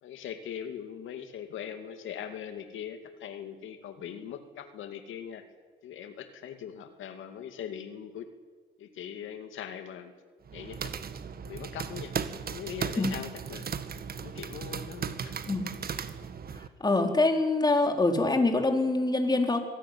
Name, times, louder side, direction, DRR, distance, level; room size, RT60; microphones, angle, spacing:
voice 1, 0.0-5.4 5.8-8.3 8.8-10.1 10.5-10.9 11.4-12.1 12.5-13.7 14.2-15.4, left 9 dB, 80° left, 7 dB, 2.4 m, -41 dB
sound 1, 10.4-16.7, right 7 dB, 50° right, 1.7 m, -36 dB
voice 2, 16.8-19.6, left 2 dB, 20° left, 4 dB, 4.1 m, -25 dB
24.5 x 17.5 x 9.6 m, 1.4 s
cardioid pair, 90°, 20 cm